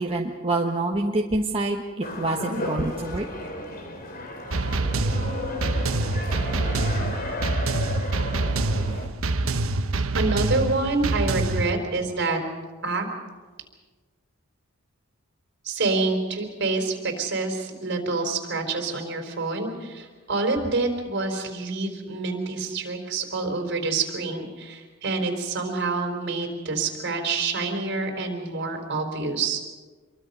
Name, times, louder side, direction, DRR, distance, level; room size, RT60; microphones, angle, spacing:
voice 1, 0.0-3.3, right 2 dB, 25° right, 0 dB, 1.3 m, -26 dB
sound 1, 2.0-9.1, left 2 dB, 45° left, 2.8 m, -34 dB
sound 2, 4.5-11.7, right 2 dB, 75° right, 1.1 m, -26 dB
voice 2, 9.9-12.4 12.8-13.1 15.6-29.6, right 3 dB, 55° right, 4 dB, 4.2 m, -27 dB
27.5 x 23.0 x 5.5 m, 1.4 s
head